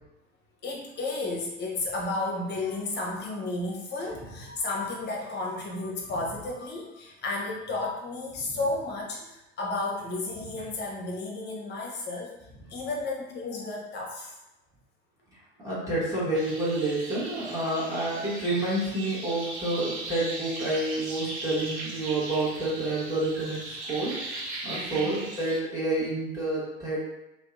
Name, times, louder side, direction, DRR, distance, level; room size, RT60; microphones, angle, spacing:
voice 1, 0.6-12.3 12.7-14.3 24.7-25.2, left 2 dB, 30° left, -2 dB, 0.7 m, -33 dB
voice 2, 15.6-27.1, right 2 dB, 10° right, -9 dB, 0.9 m, -29 dB
sound 1, 16.3-25.6, right 2 dB, 80° right, 0.7 m, -38 dB
2.6 x 2.1 x 2.4 m, 0.95 s
hypercardioid pair, 80°, 33 cm